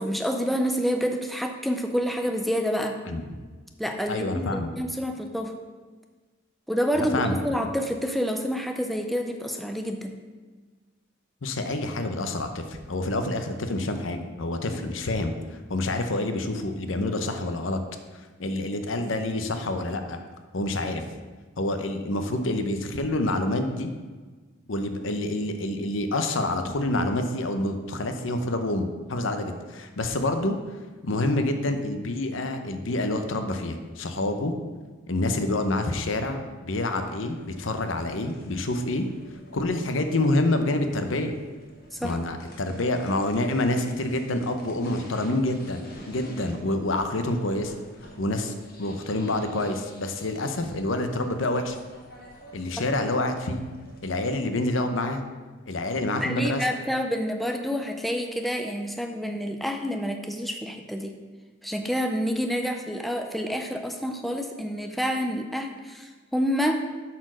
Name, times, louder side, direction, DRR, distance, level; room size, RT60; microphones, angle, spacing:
voice 1, 0.0-3.0 3.8-5.6 6.7-10.1 14.7-14.8 41.9-42.2 56.2-61.2 61.6-66.8, equal, ahead, 4 dB, 0.4 m, -28 dB
voice 2, 3.1-3.4 4.1-4.7 6.9-7.4 11.4-15.3 15.7-17.8 18.4-20.2 20.5-21.1 21.6-23.9 24.7-30.6 31.0-34.5 35.1-39.1 39.5-41.3 42.0-47.7 48.2-48.5 48.8-51.8 52.5-53.7 54.0-55.2 55.7-56.6, left 2 dB, 80° left, 7 dB, 0.8 m, -27 dB
sound 1, 36.8-54.3, equal, 50° left, 1.4 m, -49 dB
8.1 x 4.4 x 6.2 m, 1.4 s
head